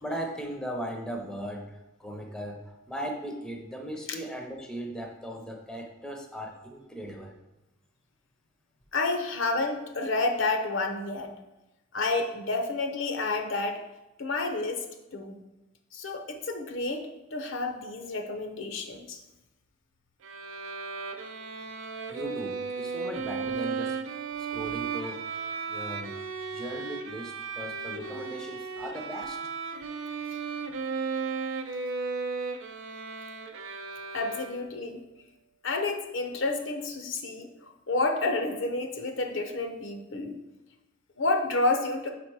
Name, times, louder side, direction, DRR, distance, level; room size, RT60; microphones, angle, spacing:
voice 1, 0.0-7.4 22.1-24.0 24.4-25.3 25.7-26.1 26.5-29.4, right 1 dB, 5° left, 2 dB, 0.6 m, -38 dB
voice 2, 8.9-11.3 11.9-13.8 14.2-14.8 15.1-15.4 15.9-19.2 34.1-35.0 35.6-37.5 37.9-40.3 41.2-42.1, left 3 dB, 70° left, 5 dB, 0.7 m, -29 dB
Bowed string instrument, 20.2-34.9, right 5 dB, 80° right, 0.5 m, -35 dB
4.8 x 4.2 x 4.6 m, 0.98 s
head